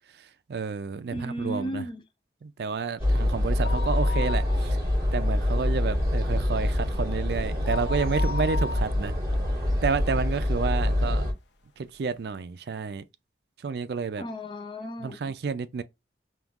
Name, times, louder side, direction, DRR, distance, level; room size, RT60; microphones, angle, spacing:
voice 1, 0.1-1.8 2.4-4.8 5.1-9.1 9.8-11.3 11.8-13.0 13.6-14.2 15.0-15.8, right 5 dB, 65° right, 0.4 m, -30 dB
voice 2, 1.1-2.0 14.2-15.3, equal, 25° left, 0.5 m, -35 dB
sound 1, 3.0-11.3, left 1 dB, 15° right, 1.8 m, -25 dB
sound 2, 3.5-5.1 5.4-5.5 6.0-10.4 10.9-11.0 11.8-11.9 12.1-12.2, left 4 dB, 80° left, 0.6 m, -37 dB
3.7 x 2.7 x 2.4 m
head